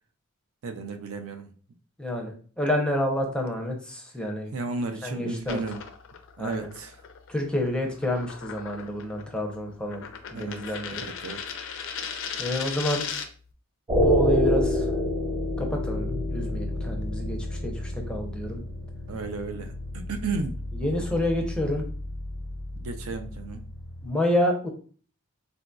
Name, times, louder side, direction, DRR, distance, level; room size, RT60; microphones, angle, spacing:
voice 1, 0.6-1.5 4.5-5.8 6.4-7.0 10.3-10.6 10.9-11.4 19.1-20.6 22.8-23.6, right 3 dB, 70° right, 0.5 m, -33 dB
voice 2, 2.0-4.5 5.0-5.6 6.4-6.7 7.3-10.0 10.3-11.0 12.4-13.0 13.9-14.9 15.6-17.4 17.6-18.6 20.7-21.8 24.0-24.7, left 1 dB, 5° left, 0.5 m, -28 dB
sound 1, 5.4-13.5, left 7 dB, 60° left, 0.4 m, -37 dB
sound 2, 13.9-24.1, equal, 25° right, 0.8 m, -29 dB
3.8 x 2.6 x 2.2 m
head